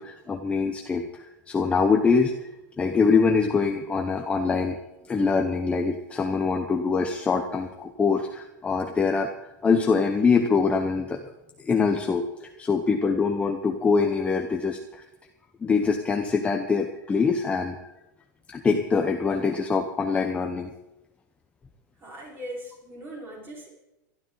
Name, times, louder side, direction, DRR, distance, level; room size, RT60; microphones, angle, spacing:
voice 1, 0.0-2.5 2.8-4.8 5.1-11.2 11.6-15.0 15.6-17.8 18.5-20.7, left 5 dB, 10° left, 4 dB, 0.9 m, -24 dB
voice 2, 22.0-23.7, equal, 20° right, -2 dB, 5.3 m, -39 dB
23.0 x 12.0 x 4.0 m, 0.94 s
supercardioid pair, 155°, 10 cm